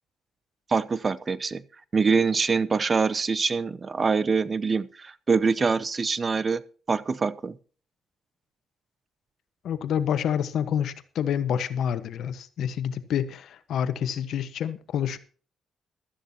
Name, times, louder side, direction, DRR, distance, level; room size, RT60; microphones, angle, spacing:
voice 1, 0.7-1.6 1.9-6.6 6.9-7.6, right 4 dB, 35° right, 0.7 m, -24 dB
voice 2, 9.6-15.2, left 9 dB, 70° left, 1.2 m, -28 dB
15.5 x 13.0 x 2.9 m
cardioid pair, 90°, 0 cm